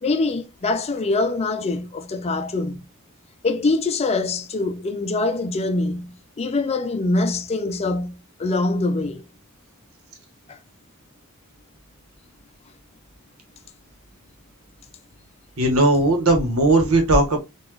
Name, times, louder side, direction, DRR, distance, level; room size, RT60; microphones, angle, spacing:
voice 1, 0.0-2.8 3.4-8.1 8.4-9.2 10.5-10.6, left 3 dB, 30° left, 0.4 m, -24 dB
voice 2, 15.6-17.4, right 2 dB, 70° right, 1.2 m, -17 dB
4.0 x 2.5 x 3.1 m
head